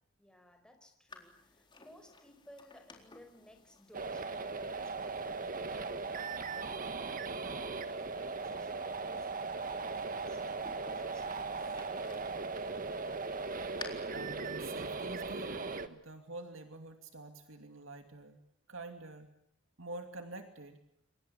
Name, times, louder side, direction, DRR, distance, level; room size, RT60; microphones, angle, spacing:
voice 1, 0.2-5.4 5.7-7.0 7.3-10.4 10.7-12.7, left 1 dB, 5° left, 5 dB, 5.1 m, -59 dB
sound 1, 1.1-13.8, left 3 dB, 20° left, 4.0 m, -57 dB
sound 2, 3.9-15.9, right 4 dB, 40° right, 1.6 m, -38 dB
voice 2, 14.1-18.4 18.7-19.3 19.8-20.8, right 2 dB, 65° right, 6 dB, 2.7 m, -47 dB
29.0 x 23.5 x 8.5 m, 0.71 s
head